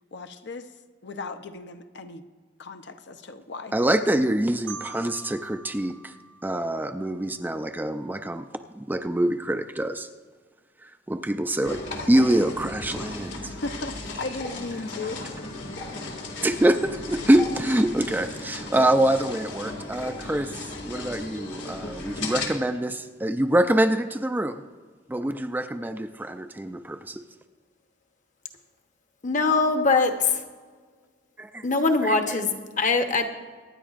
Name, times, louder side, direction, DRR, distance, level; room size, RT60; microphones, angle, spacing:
voice 1, 0.1-0.7 1.0-2.2 2.6-3.7 13.3-15.2, left 3 dB, 65° left, 7 dB, 0.7 m, -36 dB
voice 2, 3.7-6.1 6.4-8.4 8.8-10.1 10.8-11.8 12.1-13.5 16.4-24.6 25.1-27.2 31.4-31.6, right 1 dB, 10° right, 7 dB, 0.4 m, -25 dB
Marimba xylophone, 4.7-7.5, right 4 dB, 80° right, 1.0 m, -44 dB
sound 1, 11.6-22.5, left 2 dB, 85° left, 2.1 m, -36 dB
voice 3, 29.2-30.4 31.6-33.2, left 3 dB, 45° left, 6 dB, 1.0 m, -22 dB
24.0 x 10.0 x 2.5 m, 1.5 s
head